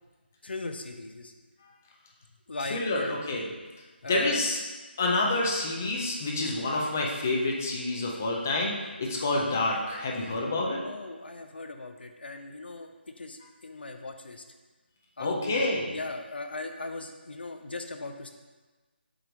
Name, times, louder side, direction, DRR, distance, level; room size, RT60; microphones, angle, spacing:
voice 1, 0.4-1.3 2.5-3.2 4.0-4.4 10.8-12.9 13.2-14.4 15.2-18.3, left 2 dB, 65° left, 6 dB, 0.7 m, -38 dB
voice 2, 2.7-3.5 4.1-4.6 5.0-8.7 9.0-10.8 15.2-16.0, left 2 dB, 10° left, -2 dB, 0.4 m, -28 dB
7.7 x 3.1 x 5.0 m, 1.3 s
hypercardioid pair, 180°, 6 cm